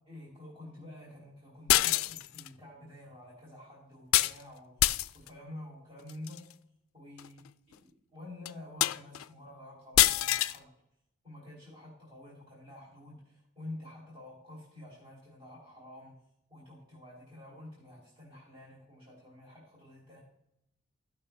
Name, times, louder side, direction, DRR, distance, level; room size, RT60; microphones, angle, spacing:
voice 1, 0.1-4.9 5.1-6.5 6.9-7.4 7.7-10.7 11.2-16.1 16.5-20.2, left 1 dB, 25° right, -5 dB, 2.9 m, -49 dB
sound 1, 1.7-2.5 4.1-4.4 4.8-5.3 6.1-6.4 7.2-7.3 7.7-7.8 8.5-8.6 8.8-9.2 10.0-10.6, left 15 dB, 90° left, 0.3 m, -25 dB
15.0 x 5.8 x 3.3 m, 0.80 s
head